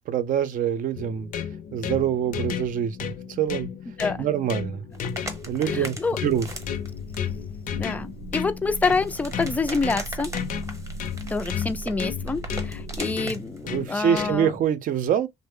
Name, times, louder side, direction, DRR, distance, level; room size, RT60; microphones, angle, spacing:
voice 1, 0.1-1.3 1.7-3.7 4.2-4.8 5.5-6.0 6.2-6.5 13.6-15.3, right 9 dB, 60° right, 0.5 m, -25 dB
sound 1, 1.0-14.6, left 8 dB, 60° left, 0.5 m, -34 dB
sound 2, 4.9-13.8, right 1 dB, 20° right, 0.8 m, -40 dB
voice 2, 5.7-6.2 7.7-10.3 11.3-14.5, left 4 dB, 10° left, 0.3 m, -27 dB
sound 3, 6.3-13.0, right 3 dB, 90° left, 0.9 m, -39 dB
3.1 x 2.0 x 3.5 m
cardioid pair, 145°, 15 cm